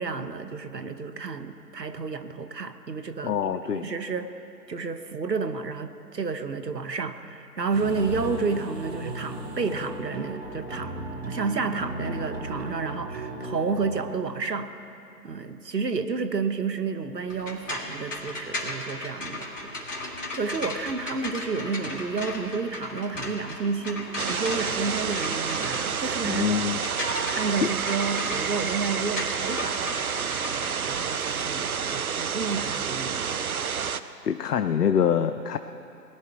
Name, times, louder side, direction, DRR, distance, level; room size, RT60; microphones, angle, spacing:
voice 1, 0.0-4.3 4.7-14.7 15.2-20.0 20.3-26.6 27.3-33.6, right 4 dB, 75° right, 10 dB, 1.0 m, -31 dB
voice 2, 3.2-3.9 26.2-26.8 27.6-27.7 34.2-35.6, left 8 dB, 65° left, 9 dB, 0.6 m, -25 dB
sound 1, 7.7-14.2, right 1 dB, 35° right, 1.9 m, -36 dB
sound 2, 17.3-31.5, left 2 dB, 50° left, 2.1 m, -36 dB
sound 3, 24.2-34.0, right 6 dB, 60° right, 0.5 m, -29 dB
18.5 x 10.5 x 4.6 m, 2.7 s
figure-of-eight pair, 150°, 50 cm